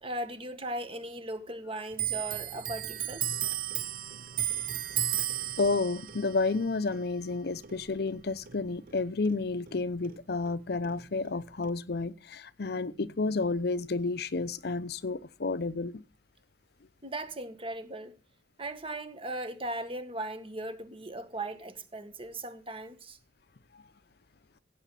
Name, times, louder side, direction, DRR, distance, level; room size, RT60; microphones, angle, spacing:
voice 1, 0.0-3.4 17.0-18.1 18.6-23.2, right 1 dB, 30° right, 1.6 m, -38 dB
Clock, 1.9-9.0 9.3-10.6 10.8-11.7, right 12 dB, 50° right, 0.6 m, -35 dB
voice 2, 5.6-16.0 23.7-23.8, left 3 dB, 60° left, 0.7 m, -31 dB
16.0 x 7.7 x 5.7 m
head